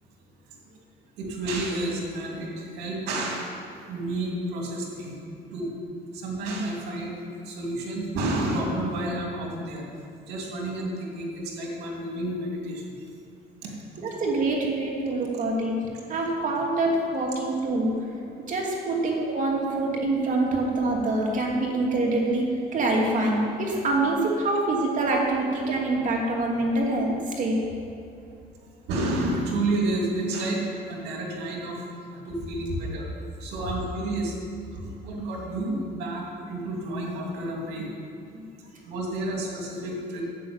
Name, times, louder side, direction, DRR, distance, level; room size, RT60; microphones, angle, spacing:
voice 1, 1.2-3.6 3.9-5.2 5.5-5.7 6.1-9.8 10.2-12.9 13.6-13.7 16.1-16.2 28.8-31.8 32.1-33.1 33.4-34.4 34.8-37.9 38.9-40.2, right 1 dB, 85° right, -1 dB, 2.6 m, -30 dB
voice 2, 14.0-17.9 18.5-27.6 38.3-38.4, right 2 dB, 50° right, -1 dB, 2.7 m, -25 dB
10.0 x 8.8 x 7.1 m, 2.6 s
cardioid pair, 110°, 17 cm